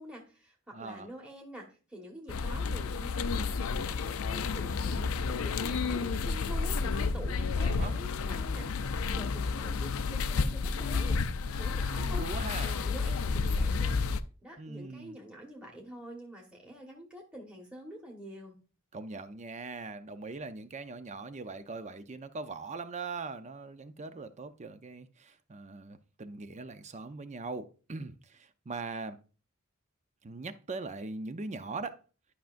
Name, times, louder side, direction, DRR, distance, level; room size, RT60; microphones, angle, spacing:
voice 1, 0.0-11.2 11.6-12.2 12.6-14.0 14.4-18.6, equal, 5° right, 1.4 m, -46 dB
voice 2, 0.7-1.1 7.6-7.9 11.9-12.7 14.6-15.2 18.9-29.2 30.2-32.0, right 3 dB, 35° right, 0.6 m, -41 dB
sound 1, 2.3-14.2, left 4 dB, 70° left, 0.5 m, -31 dB
11.5 x 5.8 x 2.5 m
head